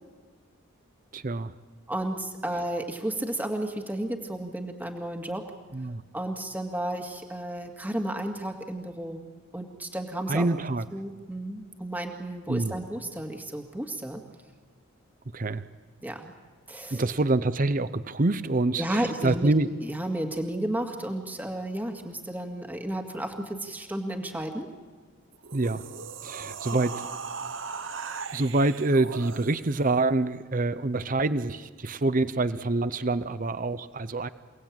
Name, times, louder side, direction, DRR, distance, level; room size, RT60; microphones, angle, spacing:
voice 1, 1.1-1.5 5.7-6.0 10.3-10.8 12.5-12.8 15.3-15.6 16.9-19.7 25.5-25.8 26.2-27.1 28.3-34.3, right 2 dB, 40° right, 14 dB, 0.7 m, -26 dB
voice 2, 1.9-5.4 6.1-9.2 9.5-10.5 10.9-14.2 16.0-16.3 16.7-17.0 18.8-19.5 19.8-24.7 26.7-26.8, right 1 dB, 10° right, 3 dB, 2.0 m, -32 dB
sound 1, 25.3-29.9, right 5 dB, 60° right, 1.1 m, -38 dB
29.0 x 18.5 x 8.9 m, 1.5 s
head